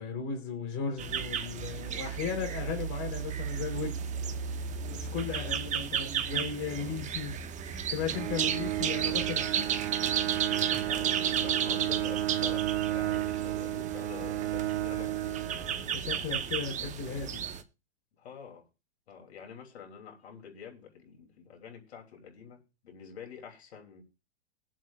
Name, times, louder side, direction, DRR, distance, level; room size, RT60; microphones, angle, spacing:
voice 1, 0.0-4.0 4.9-7.3 7.9-9.7 15.7-17.5, left 6 dB, 40° left, 3.8 m, -36 dB
sound 1, 1.0-17.6, right 8 dB, 20° right, 1.0 m, -34 dB
Bowed string instrument, 8.1-16.3, right 14 dB, 80° right, 0.9 m, -33 dB
voice 2, 10.8-16.1 18.2-18.6 19.1-24.0, left 7 dB, 75° left, 3.2 m, -48 dB
21.0 x 7.5 x 2.5 m
hypercardioid pair, 125°, 32 cm